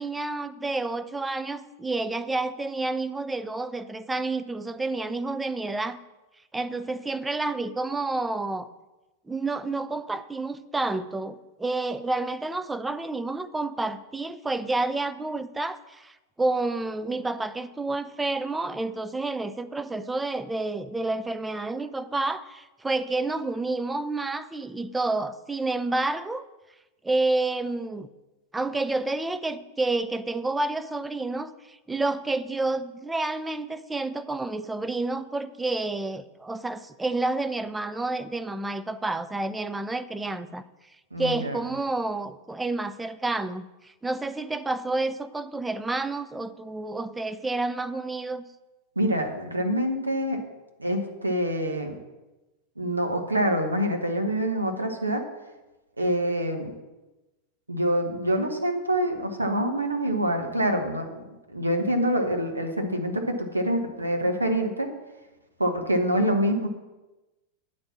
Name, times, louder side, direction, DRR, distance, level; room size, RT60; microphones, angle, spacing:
voice 1, 0.0-6.0 6.5-8.7 9.3-26.4 27.0-28.1 28.5-40.7 41.2-48.4, right 2 dB, 10° right, 12 dB, 0.4 m, -29 dB
voice 2, 41.1-41.6 49.0-50.4 50.8-51.9 52.8-55.2 56.0-56.7 57.7-61.2 61.5-64.9 65.6-66.7, equal, 80° right, 4 dB, 1.1 m, -26 dB
8.9 x 4.3 x 7.2 m, 1.1 s
figure-of-eight pair, 90°, 0 cm